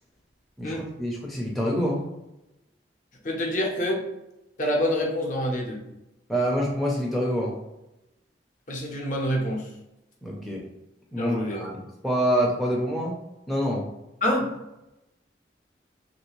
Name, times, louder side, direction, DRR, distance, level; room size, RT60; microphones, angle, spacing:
voice 1, 0.6-2.0 6.3-7.5 10.2-10.6 11.1-11.7 12.0-13.1 13.5-13.8, equal, ahead, -3 dB, 0.4 m, -26 dB
voice 2, 3.2-4.0 4.6-5.8 8.7-9.7 11.2-11.7 14.2-14.5, equal, 45° left, 0 dB, 0.7 m, -26 dB
3.1 x 2.6 x 3.0 m, 0.93 s
head